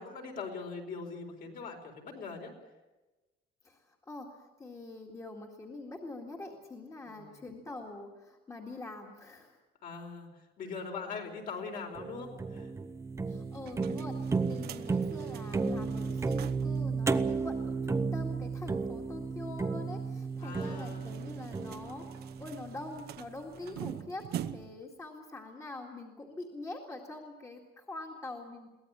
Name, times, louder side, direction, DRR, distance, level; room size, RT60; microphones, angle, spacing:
voice 1, 0.0-2.5 7.0-7.4 9.8-10.3 10.6-12.7 14.8-15.0 20.4-21.1 23.6-24.0, left 4 dB, 50° left, 2 dB, 4.4 m, -42 dB
voice 2, 3.6-9.6 13.3-28.7, left 2 dB, 15° left, 0 dB, 2.1 m, -44 dB
sound 1, 12.0-23.2, right 4 dB, 15° right, 0.8 m, -34 dB
sound 2, 13.5-16.8 17.1-17.2 17.5-17.6 20.3-24.9, right 11 dB, 60° right, 1.0 m, -45 dB
22.5 x 17.5 x 8.8 m, 1.1 s
cardioid pair, 180°, 18 cm